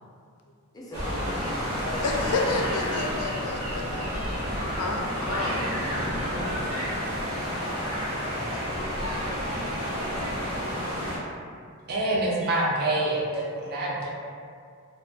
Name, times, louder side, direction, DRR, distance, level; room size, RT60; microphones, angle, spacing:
voice 1, 0.7-2.0, equal, 15° left, -4 dB, 0.4 m, -40 dB
sound 1, 0.9-11.2, equal, 80° right, 0.9 m, -30 dB
voice 2, 2.0-4.2 4.8-5.7, left 3 dB, 85° left, 1 dB, 0.4 m, -31 dB
voice 3, 11.9-14.1, right 1 dB, 45° right, -4 dB, 0.4 m, -26 dB
2.4 x 2.2 x 2.6 m, 2.2 s
head